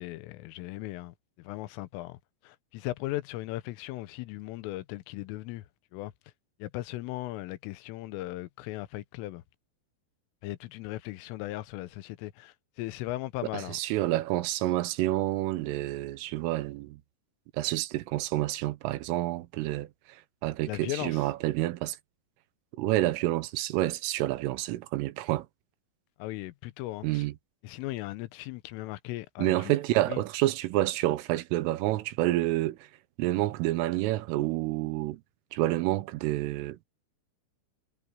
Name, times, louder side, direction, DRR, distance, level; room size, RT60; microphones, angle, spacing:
voice 1, 0.0-2.2 2.4-5.6 5.9-6.1 6.6-9.4 10.4-13.8 20.7-21.3 26.2-27.3 27.6-29.8 30.1-30.2, left 17 dB, 90° left, 3.5 m, -37 dB
voice 2, 13.5-17.0 17.5-19.9 20.4-22.0 22.8-25.5 27.0-27.3 29.4-32.8 33.2-35.2 35.5-36.9, right 16 dB, 85° right, 3.6 m, -28 dB
omnidirectional pair, 5.7 m